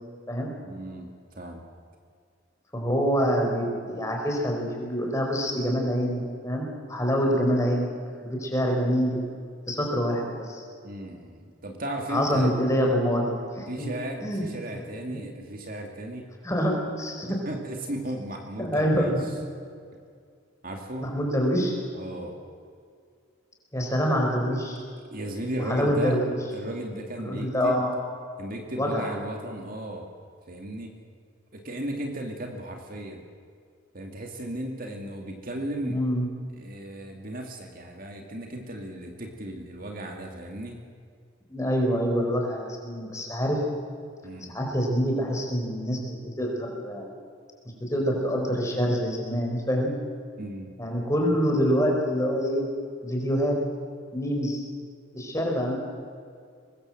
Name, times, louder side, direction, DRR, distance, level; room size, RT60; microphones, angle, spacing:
voice 1, 0.6-1.7 10.8-12.5 13.7-16.3 17.3-19.3 20.6-21.2 21.9-22.4 25.1-26.2 26.5-27.8 28.4-30.1 30.5-30.9 31.5-33.2 33.9-36.0 36.5-40.8 44.2-44.6 50.4-50.7, right 1 dB, 45° right, 2 dB, 2.5 m, -35 dB
voice 2, 2.7-7.9 8.2-9.2 9.7-10.6 12.1-13.9 14.2-14.5 16.4-17.4 18.6-19.2 21.0-21.7 23.7-24.8 25.6-26.2 27.2-27.9 28.8-29.1 35.8-36.3 41.5-43.6 44.5-47.1 47.8-49.9 50.8-52.7 53.0-53.6 54.1-54.6 55.1-55.7, equal, 15° left, 0 dB, 4.7 m, -26 dB
24.0 x 20.0 x 7.8 m, 2.2 s
head